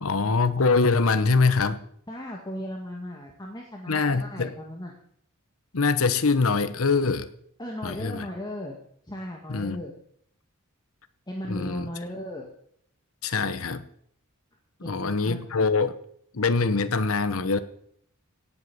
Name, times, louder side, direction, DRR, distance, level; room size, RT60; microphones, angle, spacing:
voice 1, 0.0-1.8 3.9-4.5 5.7-7.3 7.8-8.3 9.5-9.8 11.5-11.9 13.2-13.8 14.8-16.0 16.3-17.6, left 4 dB, 65° left, 12 dB, 1.0 m, -23 dB
voice 2, 2.1-4.9 7.6-8.8 9.1-9.9 11.3-12.5 14.8-15.4, left 1 dB, 20° left, 0 dB, 1.9 m, -36 dB
17.5 x 8.1 x 7.1 m, 0.68 s
head